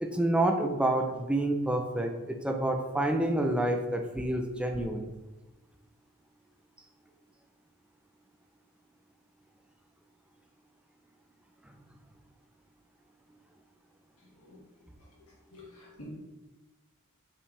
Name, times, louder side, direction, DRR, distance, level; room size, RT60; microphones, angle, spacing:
voice 1, 0.0-5.1, right 1 dB, 5° right, 4 dB, 0.5 m, -28 dB
voice 2, 15.5-16.1, left 1 dB, 85° left, -4 dB, 2.1 m, -49 dB
5.6 x 5.1 x 3.3 m, 1.1 s
head